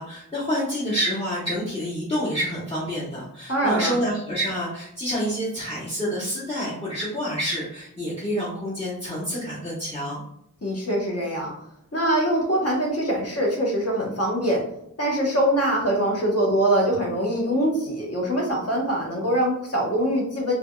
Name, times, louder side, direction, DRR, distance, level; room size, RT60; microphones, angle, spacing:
voice 1, 0.0-10.2, equal, 15° left, -7 dB, 0.8 m, -28 dB
voice 2, 3.5-3.9 10.6-11.5 11.9-14.6 15.0-20.5, right 1 dB, 45° left, -2 dB, 1.0 m, -23 dB
3.3 x 2.3 x 2.2 m, 0.74 s
wide cardioid pair, 50°, 34 cm